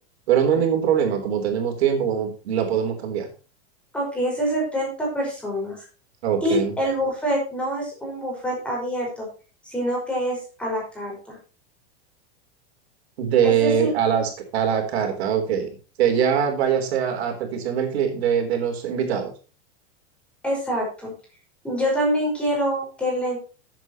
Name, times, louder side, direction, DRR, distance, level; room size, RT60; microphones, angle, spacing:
voice 1, 0.3-3.3 6.2-6.7 13.2-15.7 16.0-19.3, right 8 dB, 75° right, 4 dB, 3.8 m, -22 dB
voice 2, 3.9-5.8 6.4-9.3 9.7-11.4 13.4-13.9 20.4-21.1 21.6-23.4, equal, 5° left, -2 dB, 5.2 m, -26 dB
14.5 x 8.4 x 3.0 m, 0.34 s
supercardioid pair, 170°, 32 cm